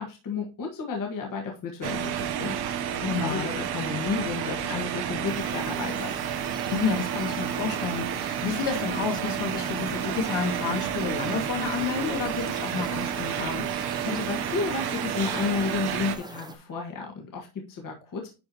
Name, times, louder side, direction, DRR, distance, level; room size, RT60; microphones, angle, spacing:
voice 1, 0.0-6.1 13.8-18.3, left 5 dB, 50° left, 1.7 m, -32 dB
sound 1, 1.8-16.2, right 9 dB, 60° right, 0.9 m, -31 dB
voice 2, 3.1-3.5 6.7-13.7, left 5 dB, 70° left, 2.0 m, -30 dB
sound 2, 5.2-16.5, right 2 dB, 10° right, 0.6 m, -42 dB
10.5 x 4.5 x 2.9 m
cardioid pair, 145°, 43 cm